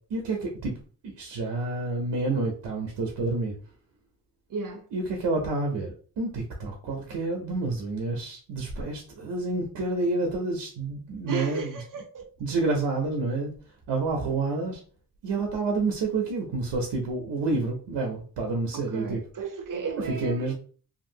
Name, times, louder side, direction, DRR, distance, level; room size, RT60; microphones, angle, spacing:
voice 1, 0.1-0.7 1.0-3.5 4.9-11.8 12.4-13.5 13.9-14.8 15.2-19.2 20.2-20.5, right 3 dB, 85° right, 0.7 m, -29 dB
voice 2, 4.5-4.9 11.3-12.3 18.7-20.5, right 5 dB, 50° right, 0.7 m, -34 dB
2.7 x 2.6 x 2.7 m
cardioid pair, 105°, 41 cm